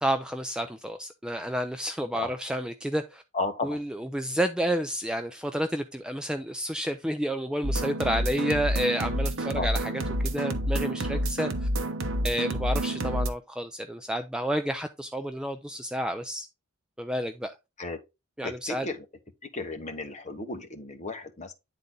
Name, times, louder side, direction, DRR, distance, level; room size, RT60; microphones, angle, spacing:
voice 1, 0.0-3.2 3.6-11.7 12.2-16.5 17.0-17.6 18.4-18.9, equal, 5° right, 0.3 m, -30 dB
voice 2, 3.3-3.8 9.5-9.7 17.8-18.0 18.4-19.0 19.5-21.5, left 3 dB, 30° left, 1.0 m, -34 dB
sound 1, 7.6-13.3, right 1 dB, 60° right, 1.0 m, -29 dB
9.6 x 4.0 x 3.7 m
head